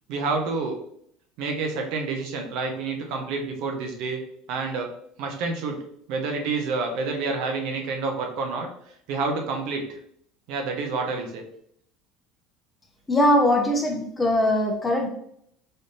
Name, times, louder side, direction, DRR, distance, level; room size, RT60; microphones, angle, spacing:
voice 1, 0.1-0.8 1.4-4.2 4.5-4.9 5.2-5.8 6.1-8.7 9.1-9.8 10.5-11.4, right 4 dB, 65° right, 3 dB, 0.6 m, -28 dB
voice 2, 13.1-15.1, left 1 dB, 15° left, 2 dB, 0.5 m, -21 dB
3.4 x 2.7 x 2.6 m, 0.70 s
cardioid pair, 140°, 0 cm